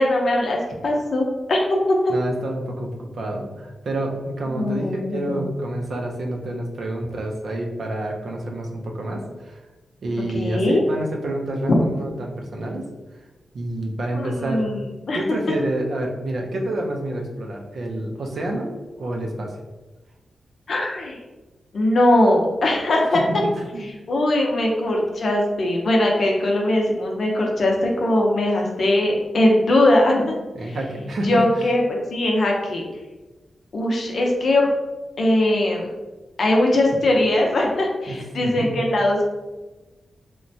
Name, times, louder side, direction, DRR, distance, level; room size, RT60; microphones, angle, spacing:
voice 1, 0.0-2.0 4.6-5.4 10.3-10.8 11.7-11.8 14.1-15.2 20.7-21.2 21.7-23.2 24.1-30.3 30.6-30.8 31.2-32.9 33.7-34.7 35.2-35.9 36.4-39.3, left 1 dB, 65° left, 0 dB, 0.6 m, -20 dB
voice 2, 2.1-9.6 10.0-12.9 13.5-14.6 15.1-19.6 23.1-23.4 23.7-23.9 30.5-31.4 38.1-38.8, right 1 dB, 70° right, 1 dB, 0.5 m, -28 dB
3.1 x 2.1 x 2.6 m, 1.2 s
cardioid pair, 80°, 0 cm